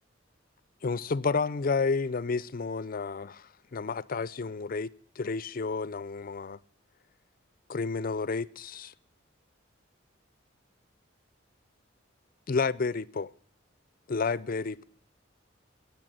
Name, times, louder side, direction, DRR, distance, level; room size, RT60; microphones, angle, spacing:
voice 1, 0.8-6.6 7.7-8.9 12.5-13.3 14.1-14.8, left 4 dB, 45° left, 0.5 m, -31 dB
15.0 x 8.7 x 9.1 m
head